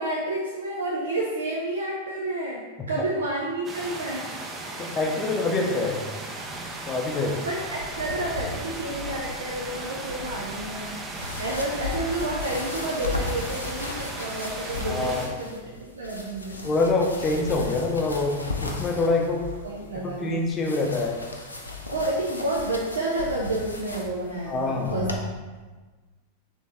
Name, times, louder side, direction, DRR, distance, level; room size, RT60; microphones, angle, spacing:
voice 1, 0.0-4.3 7.1-11.0 11.4-16.7 19.6-20.3 21.9-25.3, right 1 dB, 70° right, -3 dB, 0.5 m, -30 dB
sound 1, 3.6-15.3, right 2 dB, 20° right, 0.7 m, -37 dB
voice 2, 4.8-6.0 6.9-7.3 14.9-15.2 16.6-18.3 18.6-19.4 19.9-21.2 24.5-25.1, left 3 dB, 25° left, 1 dB, 0.6 m, -25 dB
sound 2, 6.4-25.2, left 2 dB, 80° left, 0.5 m, -37 dB
4.0 x 3.0 x 3.6 m, 1.3 s
figure-of-eight pair, 90°, 0 cm